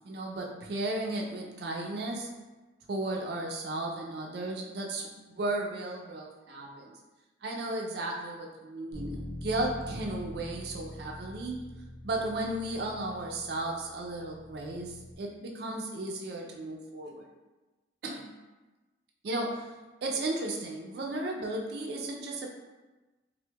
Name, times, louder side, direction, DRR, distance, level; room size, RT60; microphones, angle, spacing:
voice 1, 0.0-2.3 2.9-7.0 7.4-11.7 12.0-17.3 18.0-18.3 19.2-19.7 20.0-22.5, right 2 dB, 65° right, 0 dB, 0.4 m, -35 dB
Bass guitar, 8.9-15.2, left 1 dB, 65° left, 0.7 m, -44 dB
4.4 x 2.1 x 2.2 m, 1.1 s
head